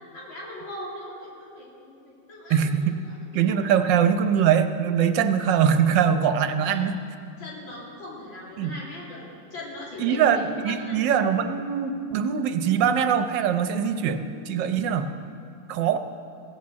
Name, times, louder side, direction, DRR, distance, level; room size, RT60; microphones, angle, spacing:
voice 1, 0.0-3.6 3.9-4.0 6.7-6.8 7.4-9.2 9.5-11.0, left 1 dB, 90° left, -5 dB, 3.7 m, -40 dB
voice 2, 3.3-6.9 8.6-8.7 10.0-15.1 15.7-16.0, right 8 dB, 70° right, 9 dB, 1.4 m, -22 dB
16.0 x 8.6 x 7.4 m, 2.4 s
omnidirectional pair, 2.1 m